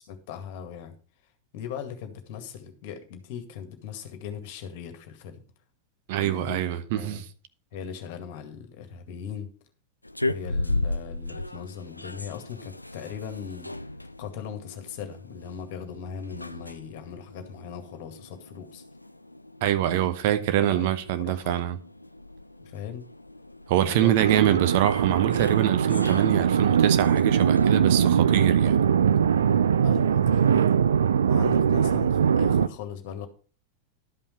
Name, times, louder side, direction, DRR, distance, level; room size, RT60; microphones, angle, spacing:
voice 1, 0.1-0.9 1.5-5.4 6.2-6.6 6.9-7.2 7.7-9.5 10.2-13.7 14.2-18.8 19.8-20.1 20.5-20.9 21.2-21.6 22.6-23.0 23.8-24.4 29.8-30.8 31.3-33.3, left 8 dB, 50° left, 2.0 m, -39 dB
voice 2, 6.1-7.2 19.6-21.8 23.7-28.8, right 12 dB, 50° right, 0.9 m, -24 dB
sound 1, 10.0-27.7, left 2 dB, 85° left, 0.4 m, -37 dB
sound 2, 24.2-32.7, right 7 dB, 65° right, 0.5 m, -21 dB
12.0 x 5.6 x 5.5 m
figure-of-eight pair, 90°, 0 cm